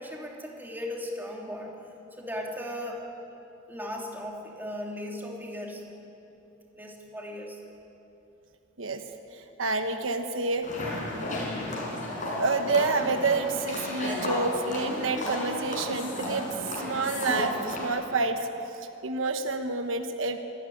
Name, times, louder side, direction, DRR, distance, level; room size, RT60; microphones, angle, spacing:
voice 1, 0.0-1.8 2.1-3.0 3.7-5.9 6.7-7.6, left 1 dB, 10° right, -1 dB, 3.0 m, -37 dB
voice 2, 9.3-10.7 12.4-16.5 16.8-18.5 19.0-20.4, right 3 dB, 80° right, 6 dB, 1.3 m, -28 dB
sound 1, 10.6-17.9, left 1 dB, 40° left, 5.9 m, -33 dB
24.5 x 13.5 x 10.0 m, 2.9 s
head